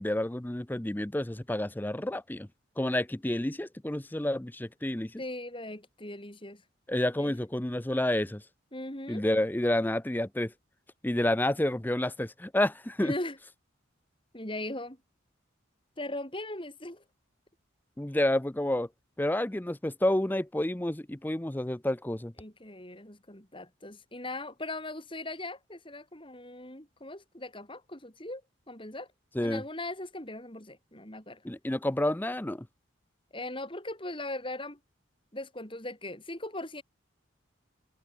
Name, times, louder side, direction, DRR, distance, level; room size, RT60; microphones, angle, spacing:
voice 1, 0.0-2.5 2.8-5.2 6.9-8.4 9.1-10.5 11.0-13.1 18.0-18.9 19.2-22.3 29.3-29.6 31.4-32.7, left 1 dB, 10° left, 0.5 m, -29 dB
voice 2, 5.2-6.6 7.2-7.3 8.7-9.2 13.0-13.4 14.3-15.0 16.0-17.0 22.4-28.4 28.7-29.1 29.4-31.4 33.3-34.8 35.3-36.8, left 1 dB, 25° left, 4.6 m, -39 dB
head